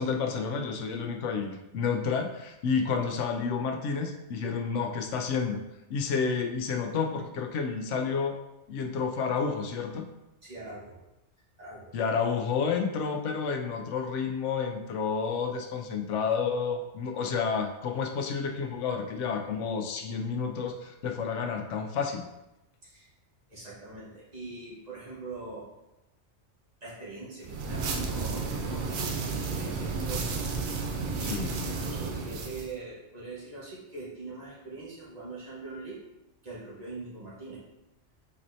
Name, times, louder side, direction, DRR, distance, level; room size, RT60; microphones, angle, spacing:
voice 1, 0.0-5.6 5.9-8.4 8.7-10.1 11.9-22.3 31.2-31.5, left 5 dB, 90° left, 4 dB, 0.9 m, -30 dB
voice 2, 10.4-11.0 11.6-11.9 22.8-23.1 23.5-25.7 26.8-30.3 31.1-36.0 36.4-37.6, right 3 dB, 35° right, -7 dB, 1.4 m, -42 dB
sound 1, 27.4-32.7, right 4 dB, 60° right, 0.6 m, -32 dB
4.3 x 4.0 x 2.7 m, 0.94 s
omnidirectional pair, 1.2 m